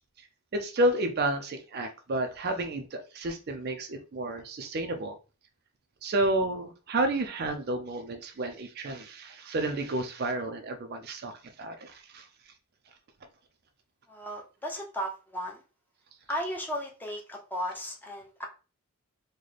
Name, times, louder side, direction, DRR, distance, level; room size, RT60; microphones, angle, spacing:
voice 1, 0.5-5.2 6.0-12.3, right 1 dB, 45° right, 6 dB, 0.4 m, -31 dB
voice 2, 14.1-15.6 16.3-18.5, equal, 10° left, 0 dB, 0.6 m, -35 dB
3.9 x 2.2 x 3.2 m, 0.33 s
head